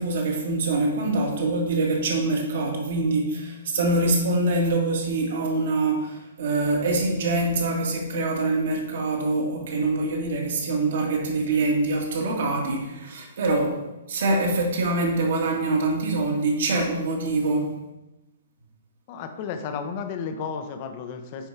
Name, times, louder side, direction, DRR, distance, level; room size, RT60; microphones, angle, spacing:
voice 1, 0.0-13.8 14.1-17.7, right 2 dB, 55° right, 1 dB, 1.8 m, -24 dB
voice 2, 19.1-21.5, left 6 dB, 35° left, 7 dB, 0.9 m, -33 dB
9.0 x 5.2 x 3.8 m, 1.0 s
figure-of-eight pair, 120°, 0 cm